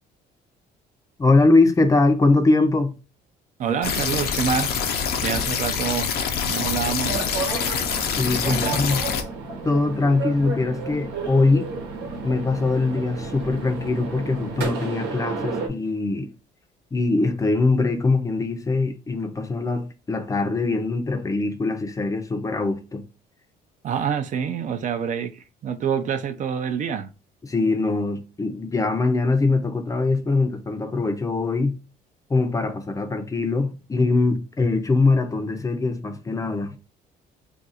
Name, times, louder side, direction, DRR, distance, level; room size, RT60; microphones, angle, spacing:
voice 1, 1.2-2.9 8.2-9.0 9.6-11.7 12.2-16.3 16.9-23.0 27.4-31.8 32.3-36.8, left 3 dB, 20° left, 0.5 m, -22 dB
voice 2, 3.6-4.8 5.2-6.1 6.5-7.3 8.5-8.8 23.8-27.1, right 7 dB, 50° right, 0.4 m, -27 dB
sound 1, 3.8-9.2, left 7 dB, 70° left, 0.5 m, -25 dB
sound 2, 7.0-15.7, right 4 dB, 85° right, 0.9 m, -32 dB
2.5 x 2.3 x 4.0 m
cardioid pair, 110°, 17 cm